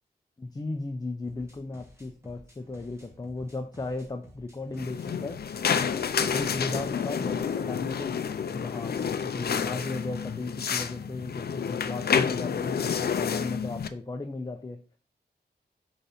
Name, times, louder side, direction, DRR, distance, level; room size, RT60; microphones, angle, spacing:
voice 1, 0.4-5.4 6.2-14.8, left 2 dB, 25° left, 6 dB, 0.6 m, -36 dB
sound 1, 1.2-9.6, equal, 15° right, 1.6 m, -55 dB
sound 2, 4.8-13.9, left 7 dB, 65° left, 0.5 m, -29 dB
5.1 x 4.0 x 5.8 m, 0.39 s
wide cardioid pair, 95°, 17 cm